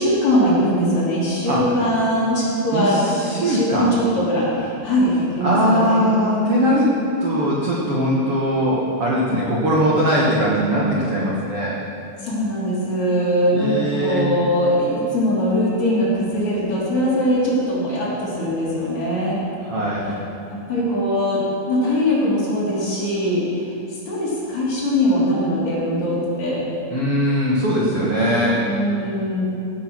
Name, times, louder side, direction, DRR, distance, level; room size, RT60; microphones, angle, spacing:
voice 1, 0.0-6.1 12.2-19.4 20.5-26.6 28.7-29.4, equal, 40° left, -7 dB, 4.1 m, -21 dB
voice 2, 2.7-3.9 5.4-6.9 7.2-11.8 13.5-14.3 19.6-20.1 26.9-28.6, equal, 65° right, -5 dB, 1.4 m, -20 dB
16.5 x 8.7 x 6.2 m, 2.6 s
omnidirectional pair, 5.3 m